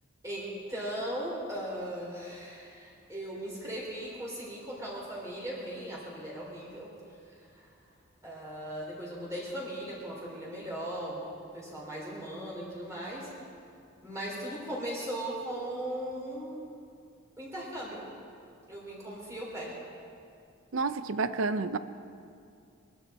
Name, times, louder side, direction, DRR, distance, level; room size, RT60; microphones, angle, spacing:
voice 1, 0.2-6.9 8.2-11.2 11.5-13.3 14.0-16.6 17.4-18.0 18.7-19.8, right 1 dB, 15° right, -5 dB, 3.5 m, -38 dB
voice 2, 20.7-21.8, right 3 dB, 70° right, 12 dB, 0.6 m, -29 dB
22.0 x 12.0 x 4.3 m, 2.4 s
head